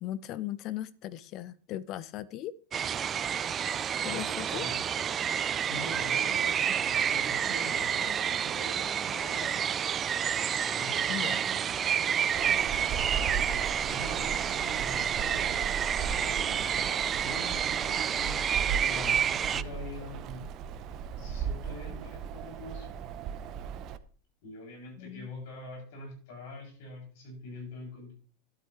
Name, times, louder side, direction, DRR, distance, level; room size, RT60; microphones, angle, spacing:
voice 1, 0.0-2.5 4.0-4.7 11.1-11.4 25.0-25.3, left 13 dB, 50° left, 0.6 m, -37 dB
sound 1, 2.7-19.6, right 8 dB, 35° right, 0.5 m, -29 dB
voice 2, 4.0-4.7 5.6-10.0 10.7-13.5 13.9-20.5 21.2-22.9 24.4-28.1, left 2 dB, 65° left, 6.9 m, -45 dB
Wind, 12.3-24.0, right 7 dB, 50° right, 0.9 m, -37 dB
12.0 x 11.5 x 3.2 m
hypercardioid pair, 90°, 0 cm